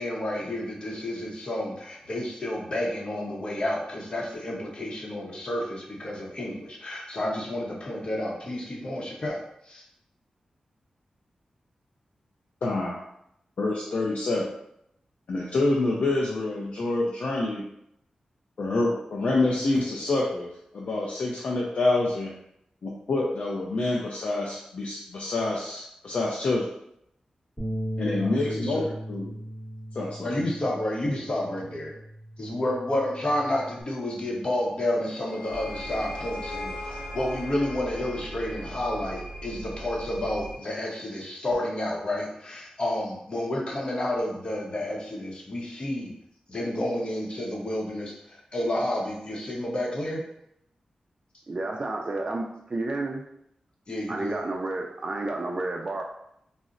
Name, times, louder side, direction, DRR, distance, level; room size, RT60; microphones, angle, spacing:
voice 1, 0.0-9.8 28.2-28.9 30.2-31.9 32.4-46.1 46.5-50.2 53.9-54.4, left 1 dB, 45° left, -1 dB, 0.7 m, -30 dB
voice 2, 12.6-13.0 13.6-14.5 15.3-17.6 18.6-20.5 20.7-22.3 22.8-26.6 28.0-28.8 29.1-29.3 29.9-30.3, left 2 dB, 70° left, -3 dB, 0.5 m, -27 dB
Bass guitar, 27.6-33.8, equal, 10° left, 0.9 m, -37 dB
sound 1, 34.9-40.0, left 3 dB, 90° left, 1.1 m, -42 dB
sound 2, 35.5-40.6, right 1 dB, 85° right, 0.6 m, -40 dB
voice 3, 51.5-53.2 54.1-56.0, right 2 dB, 40° right, 1 dB, 0.3 m, -31 dB
3.9 x 2.0 x 2.4 m, 0.76 s
wide cardioid pair, 85°, 2 cm